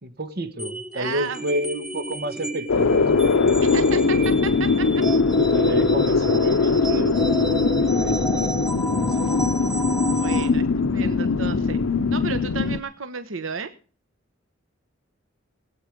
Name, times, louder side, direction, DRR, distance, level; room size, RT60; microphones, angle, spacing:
voice 1, 0.0-3.6 5.4-8.5 8.8-9.7, equal, 50° right, 1.7 m, -31 dB
sound 1, 0.6-10.5, right 1 dB, 5° right, 1.1 m, -32 dB
voice 2, 0.9-1.4 3.6-5.0 10.1-11.8 12.1-13.7, right 5 dB, 80° right, 1.1 m, -33 dB
Monologue Wind, 2.7-12.8, left 4 dB, 85° left, 0.6 m, -21 dB
18.5 x 9.0 x 5.1 m
head